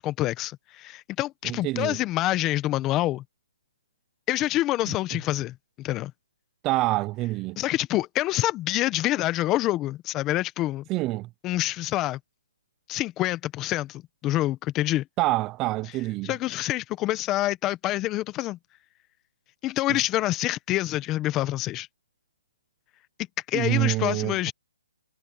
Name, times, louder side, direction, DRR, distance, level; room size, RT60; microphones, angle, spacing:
voice 1, 0.0-3.2 4.3-6.1 7.6-10.8 11.4-12.2 12.9-15.0 16.2-18.6 19.6-21.9 23.5-24.5, left 16 dB, 15° left, 1.2 m, -26 dB
voice 2, 1.4-2.0 4.9-5.0 6.6-7.6 10.9-11.3 15.2-16.3 23.5-24.5, right 19 dB, 20° right, 0.6 m, -26 dB
hypercardioid pair, 155°, 0 cm